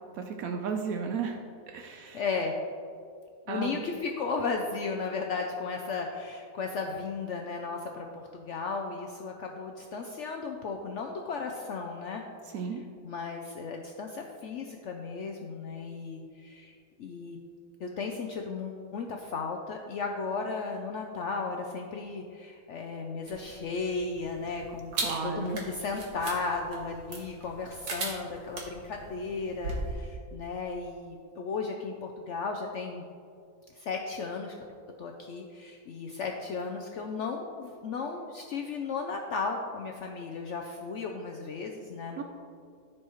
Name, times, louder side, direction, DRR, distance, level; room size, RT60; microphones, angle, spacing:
voice 1, 0.1-1.4 1.7-2.2 3.5-3.8 12.5-12.8 24.9-25.6 42.2-42.3, right 6 dB, 70° right, 5 dB, 1.0 m, -34 dB
voice 2, 1.9-2.6 3.5-12.2 13.0-17.4 17.8-33.0 33.7-34.6 35.0-42.2, left 4 dB, 65° left, 2 dB, 0.8 m, -35 dB
sound 1, 23.3-29.9, right 2 dB, 90° right, 1.8 m, -39 dB
14.0 x 4.7 x 3.0 m, 2.4 s
omnidirectional pair, 1.6 m